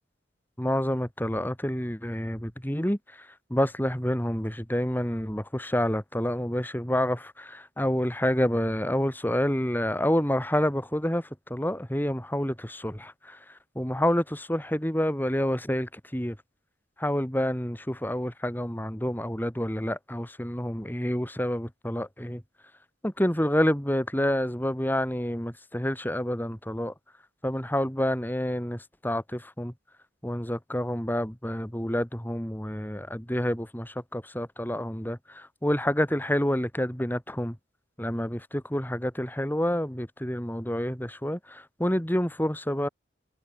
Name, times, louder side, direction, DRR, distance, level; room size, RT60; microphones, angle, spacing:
voice 1, 0.6-13.4 13.7-16.4 17.0-22.4 23.0-26.9 27.4-29.7 30.2-37.6 38.0-42.9, equal, 10° left, 3.1 m, -28 dB
head